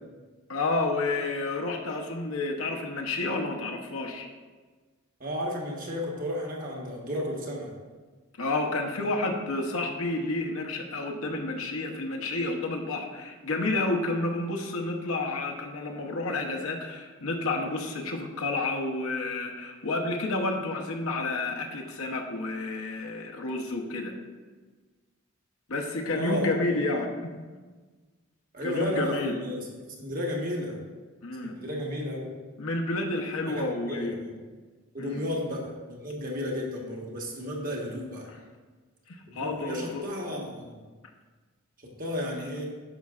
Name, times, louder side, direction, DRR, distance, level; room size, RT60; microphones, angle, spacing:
voice 1, 0.5-4.3 8.4-24.2 25.7-27.3 28.6-29.4 31.2-31.6 32.6-34.2 35.0-35.2 39.1-40.1, left 2 dB, 75° left, 2 dB, 0.9 m, -30 dB
voice 2, 5.2-7.7 26.1-27.0 28.5-30.8 31.4-32.3 33.5-34.4 34.9-38.3 39.3-40.8 41.8-42.7, left 1 dB, 40° right, -1 dB, 1.2 m, -33 dB
9.9 x 6.4 x 2.4 m, 1.4 s
head